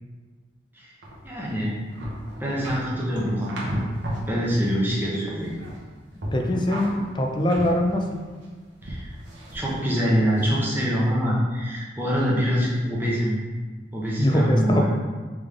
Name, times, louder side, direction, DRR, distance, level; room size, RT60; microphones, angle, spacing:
sound 1, 1.0-4.3 4.7-5.9 6.2-8.5 8.8-9.8 10.3-10.6, equal, 75° right, 1.0 m, -34 dB
voice 1, 1.2-1.8 2.4-3.6 4.3-5.5 8.8-9.1 9.5-13.3 13.9-14.9, equal, 10° right, -6 dB, 0.8 m, -24 dB
voice 2, 6.3-8.2 14.2-14.9, left 1 dB, 25° left, 2 dB, 0.4 m, -23 dB
3.6 x 3.4 x 3.4 m, 1.4 s
head